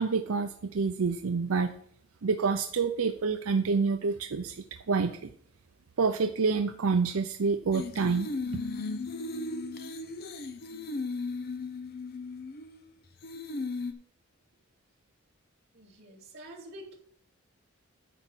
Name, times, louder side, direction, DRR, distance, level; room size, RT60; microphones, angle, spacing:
voice 1, 0.0-1.7 2.2-5.1 6.0-8.3, right 4 dB, 85° right, 8 dB, 0.6 m, -27 dB
sound 1, 7.7-12.8 13.2-13.9, left 3 dB, 45° left, 0.8 m, -36 dB
voice 2, 15.7-17.0, right 1 dB, 50° right, -4 dB, 3.1 m, -47 dB
10.0 x 4.5 x 7.4 m, 0.62 s
head